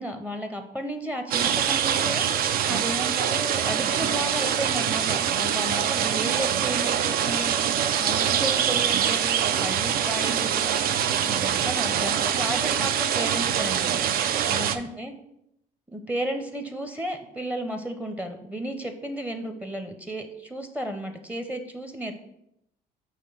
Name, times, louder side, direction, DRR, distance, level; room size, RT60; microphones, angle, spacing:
voice 1, 0.0-15.1 15.9-22.2, equal, 10° right, 6 dB, 0.6 m, -33 dB
sound 1, 1.3-14.8, right 9 dB, 60° right, 0.5 m, -24 dB
6.5 x 3.0 x 5.5 m, 0.79 s
cardioid pair, 110°, 17 cm